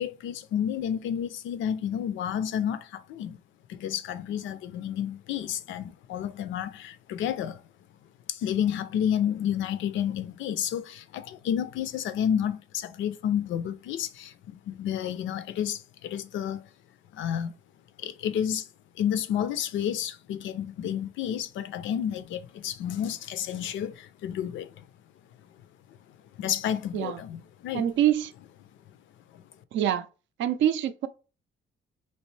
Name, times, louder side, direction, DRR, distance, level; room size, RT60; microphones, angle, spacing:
voice 1, 0.0-3.4 3.7-7.6 8.3-16.6 17.1-17.5 18.0-18.7 19.0-24.8 26.4-27.8 29.3-29.4, left 9 dB, 75° left, 0.4 m, -30 dB
voice 2, 27.7-28.3 29.7-30.1 30.4-31.1, right 11 dB, 70° right, 0.4 m, -25 dB
3.1 x 2.6 x 3.1 m
cardioid pair, 90°, 20 cm